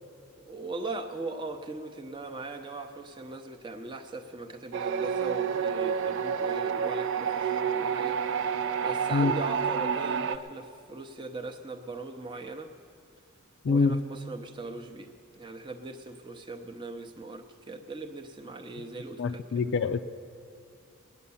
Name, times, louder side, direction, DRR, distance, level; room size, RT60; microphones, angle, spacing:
voice 1, 0.4-8.5 8.8-12.7 13.7-19.7, right 3 dB, 20° right, 3 dB, 0.7 m, -40 dB
sound 1, 4.7-10.4, right 7 dB, 65° right, 0.5 m, -29 dB
voice 2, 13.6-14.0 19.2-20.1, left 4 dB, 60° left, 7 dB, 0.4 m, -25 dB
19.5 x 9.5 x 7.0 m, 2.4 s
head